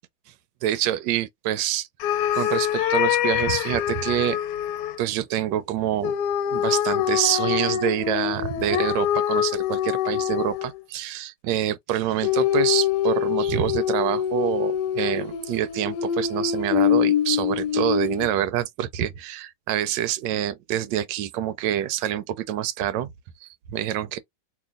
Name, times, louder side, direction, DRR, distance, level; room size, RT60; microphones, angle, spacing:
voice 1, 0.6-1.9 2.3-4.4 5.0-6.2 6.5-23.1 23.4-24.2, right 11 dB, 85° right, 1.2 m, -26 dB
sound 1, 2.0-5.0 6.0-10.8 12.2-18.3, left 10 dB, 75° left, 1.1 m, -24 dB
2.9 x 2.7 x 3.5 m
omnidirectional pair, 1.9 m